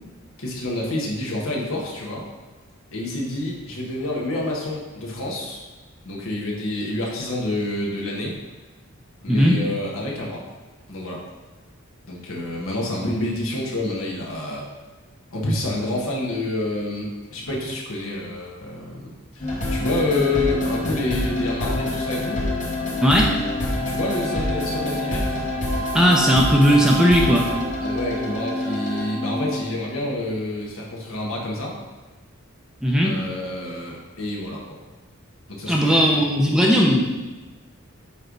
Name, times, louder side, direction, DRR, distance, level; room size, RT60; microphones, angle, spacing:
voice 1, 0.4-2.3 2.9-5.6 6.0-8.3 9.2-10.4 10.9-11.2 12.1-14.6 15.3-22.4 23.8-25.5 27.8-31.7 33.0-34.8 35.5-36.2, left 2 dB, 80° left, -3 dB, 1.4 m, -28 dB
sound 1, 19.4-29.8, left 1 dB, 40° left, 1.3 m, -26 dB
voice 2, 23.0-23.3 25.9-27.5 32.8-33.2 35.7-37.2, equal, 5° right, -2 dB, 0.6 m, -17 dB
8.9 x 3.2 x 3.9 m, 1.3 s
head